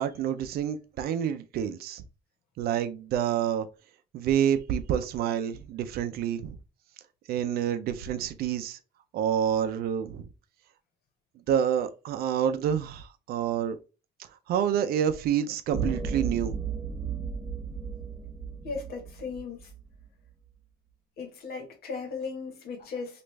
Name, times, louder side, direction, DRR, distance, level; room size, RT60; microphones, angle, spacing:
voice 1, 0.0-2.0 2.6-3.7 4.1-6.6 7.3-8.8 9.1-10.3 11.5-13.8 14.5-16.5, right 9 dB, 65° right, 0.5 m, -28 dB
sound 1, 15.7-20.0, right 6 dB, 5° right, 0.9 m, -34 dB
voice 2, 18.6-19.7 21.2-23.2, left 5 dB, 65° left, 1.3 m, -37 dB
3.1 x 2.5 x 3.2 m
cardioid pair, 110°, 17 cm